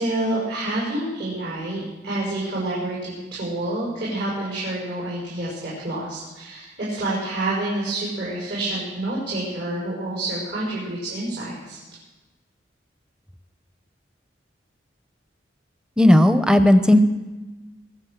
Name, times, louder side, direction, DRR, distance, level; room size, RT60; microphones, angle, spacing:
voice 1, 0.0-11.8, right 1 dB, 70° right, -7 dB, 6.0 m, -28 dB
voice 2, 16.0-17.0, left 1 dB, 5° right, 9 dB, 0.7 m, -14 dB
23.0 x 8.3 x 6.6 m, 1.2 s
head